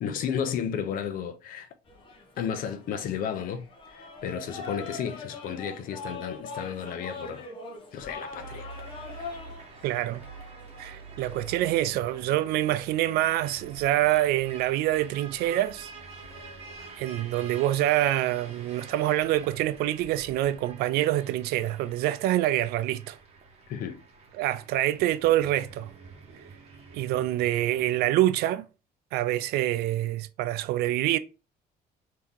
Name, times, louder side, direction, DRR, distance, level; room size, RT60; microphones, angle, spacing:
voice 1, 0.0-1.7 2.4-7.4 7.9-8.7 23.7-24.0, left 8 dB, 60° left, 0.6 m, -33 dB
sound 1, 1.9-20.7, left 3 dB, 30° left, 0.8 m, -45 dB
sound 2, 8.4-28.1, right 4 dB, 40° right, 1.0 m, -47 dB
voice 2, 9.8-10.2 10.8-15.9 17.0-23.2 24.3-25.9 26.9-28.7 29.1-31.2, right 14 dB, 75° right, 0.4 m, -26 dB
3.5 x 2.8 x 3.6 m
cardioid pair, 145°, 16 cm